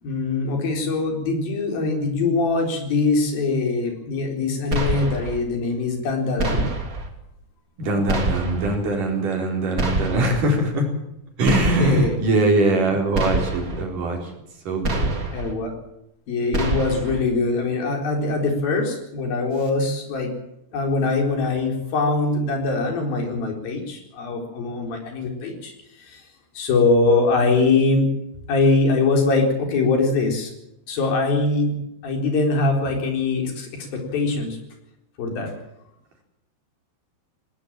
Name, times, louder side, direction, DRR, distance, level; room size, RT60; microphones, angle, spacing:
voice 1, 0.0-6.7 11.8-12.2 15.3-15.7 16.3-20.3 20.7-26.2 26.5-28.1 28.5-30.5 30.9-31.8 32.0-34.6 35.2-35.5, left 3 dB, 55° left, 3 dB, 5.7 m, -22 dB
sound 1, 4.7-5.4 6.4-7.1 8.1-8.8 9.8-10.5 11.4-12.1 13.1-13.8 14.8-15.5 16.5-17.2, right 2 dB, 25° right, 2.0 m, -25 dB
voice 2, 7.8-10.9 11.4-14.3 14.7-15.1, right 2 dB, 45° right, 2 dB, 5.4 m, -22 dB
20.0 x 19.0 x 7.5 m, 0.83 s
omnidirectional pair, 5.2 m